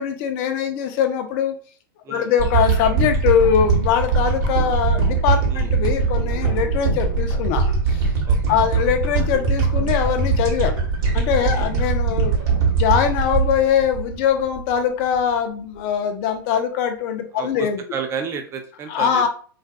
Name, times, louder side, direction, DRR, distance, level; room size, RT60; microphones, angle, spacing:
voice 1, 0.0-1.5 2.1-8.1 8.5-10.8 11.1-12.3 12.7-17.8 18.9-19.3, left 8 dB, 45° left, 6 dB, 0.5 m, -22 dB
sound 1, 2.4-14.7 15.2-15.3, right 4 dB, 50° right, 1.0 m, -21 dB
voice 2, 8.3-8.6 11.5-11.7 17.3-19.3, right 6 dB, 25° right, 5 dB, 0.5 m, -31 dB
2.4 x 2.4 x 2.3 m, 0.42 s
hypercardioid pair, 115°, 12 cm